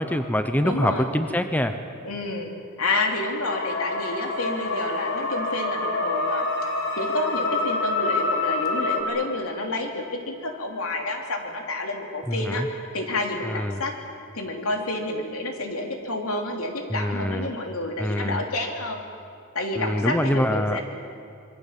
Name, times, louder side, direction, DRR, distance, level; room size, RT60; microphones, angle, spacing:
voice 1, 0.0-1.8 12.3-12.7 13.4-13.8 16.9-17.5 18.0-18.4 19.8-20.8, equal, 10° left, 8 dB, 0.9 m, -25 dB
voice 2, 0.6-1.1 2.0-2.5 2.8-6.5 6.9-12.6 12.9-13.9 14.3-19.0 19.5-20.8, left 2 dB, 75° left, 2 dB, 3.4 m, -29 dB
sound 1, 3.4-9.0, left 3 dB, 55° left, 3.7 m, -27 dB
26.0 x 22.5 x 7.6 m, 2.5 s
head